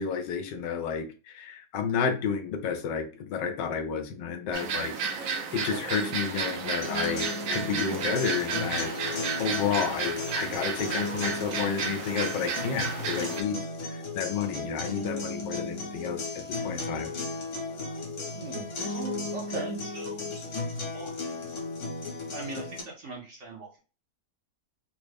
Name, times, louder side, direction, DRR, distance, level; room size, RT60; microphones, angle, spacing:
voice 1, 0.0-8.9 9.4-17.1, left 6 dB, 85° left, 1.3 m, -31 dB
sound 1, 4.5-13.4, right 6 dB, 90° right, 1.3 m, -32 dB
sound 2, 6.8-22.8, left 3 dB, 60° left, 1.4 m, -35 dB
voice 2, 18.3-20.2 20.9-21.1 22.3-23.8, right 3 dB, 55° right, 0.8 m, -39 dB
3.6 x 2.1 x 3.3 m
omnidirectional pair, 1.9 m